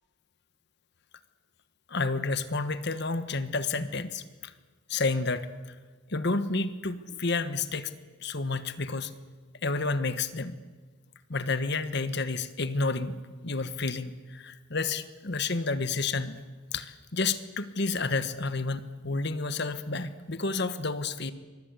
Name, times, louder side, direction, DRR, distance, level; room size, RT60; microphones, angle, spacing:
voice 1, 1.9-4.5 4.9-5.5 6.1-7.9 8.2-9.1 9.6-10.6 11.3-16.4 16.7-21.3, left 3 dB, 55° left, 11 dB, 1.4 m, -30 dB
24.5 x 21.5 x 8.3 m, 1.4 s
head